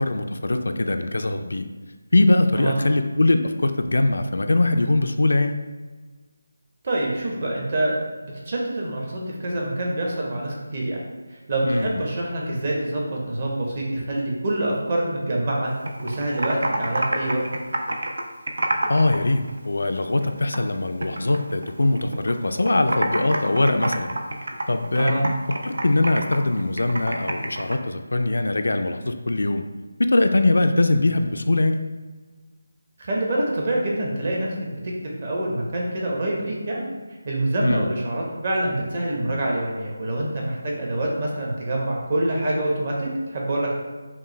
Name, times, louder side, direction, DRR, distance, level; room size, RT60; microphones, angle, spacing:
voice 1, 0.0-1.7 2.1-5.6 11.6-12.0 18.9-24.2 24.7-25.3 25.6-29.6 30.0-31.8 37.6-37.9, left 2 dB, 75° left, 7 dB, 0.4 m, -21 dB
voice 2, 6.8-11.0 11.3-15.7 16.0-17.4 25.0-25.3 33.0-34.9 35.2-36.9 37.2-43.7, right 1 dB, 40° right, -2 dB, 1.0 m, -26 dB
Computer keyboard, 15.6-19.2 19.5-20.7 21.0-22.3 22.6-27.8, right 1 dB, 65° right, 0.6 m, -28 dB
5.8 x 2.1 x 3.1 m, 1.3 s
figure-of-eight pair, 165°, 0 cm